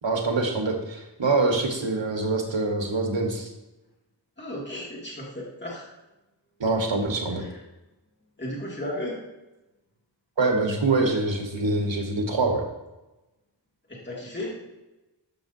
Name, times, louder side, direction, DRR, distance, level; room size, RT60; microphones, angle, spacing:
voice 1, 0.0-3.5 6.6-7.4 10.4-12.7, right 3 dB, 85° right, 2 dB, 1.5 m, -25 dB
voice 2, 4.4-5.9 7.3-7.6 8.4-9.2 13.9-14.6, left 1 dB, 25° left, -4 dB, 2.3 m, -34 dB
12.5 x 6.1 x 2.7 m, 1.0 s
wide cardioid pair, 40°, 44 cm